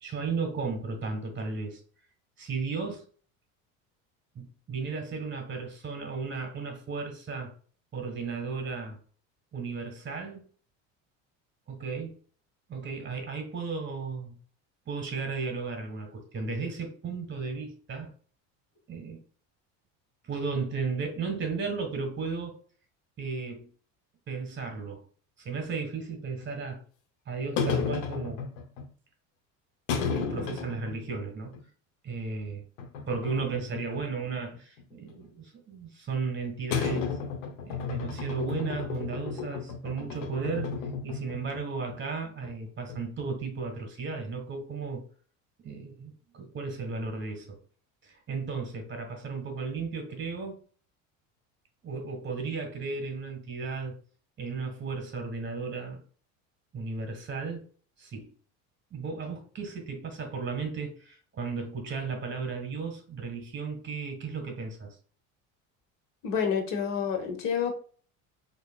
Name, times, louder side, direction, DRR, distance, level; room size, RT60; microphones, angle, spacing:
voice 1, 0.0-1.8 2.4-3.0 4.3-7.5 7.9-9.0 9.5-10.4 11.7-12.1 12.7-14.4 14.9-18.1 18.9-19.2 20.2-22.6 23.2-23.7 24.3-25.0 25.4-26.8 27.3-28.4 30.1-31.5 32.0-32.6 33.1-37.1 37.6-40.8 41.0-45.0 45.6-47.6 48.0-50.6 51.8-53.9 54.4-56.0 56.7-57.7 58.0-58.3 58.9-65.0, right 4 dB, 30° right, 1.4 m, -34 dB
sound 1, 26.4-26.5 27.6-28.9 29.9-31.2 31.5-31.6 32.8-34.0 34.3-35.2 36.7-41.6 41.9-42.0 42.4-42.5 42.9-43.5, left 5 dB, 80° left, 0.8 m, -33 dB
voice 2, 66.2-67.8, left 7 dB, 60° left, 1.1 m, -28 dB
4.5 x 2.8 x 2.3 m
supercardioid pair, 95°, 38 cm